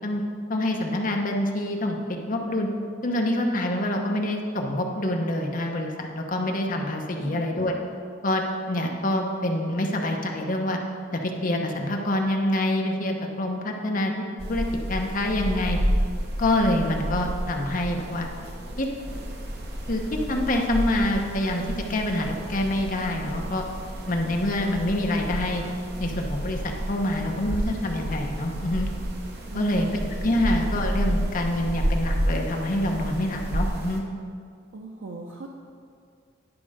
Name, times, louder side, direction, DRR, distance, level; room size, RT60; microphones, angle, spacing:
voice 1, 0.5-2.7 3.0-7.7 8.2-8.4 8.7-10.8 11.1-14.1 14.5-15.8 16.4-18.3 18.8-18.9 19.9-20.0 20.3-21.6 21.9-23.6 24.1-25.6 26.0-28.9 29.5-34.0, left 1 dB, 45° left, 2 dB, 0.9 m, -26 dB
sound 1, 14.4-34.0, equal, 60° right, 1.1 m, -30 dB
voice 2, 34.7-35.5, right 3 dB, 85° right, 1 dB, 0.6 m, -39 dB
10.5 x 5.3 x 5.0 m, 2.3 s
head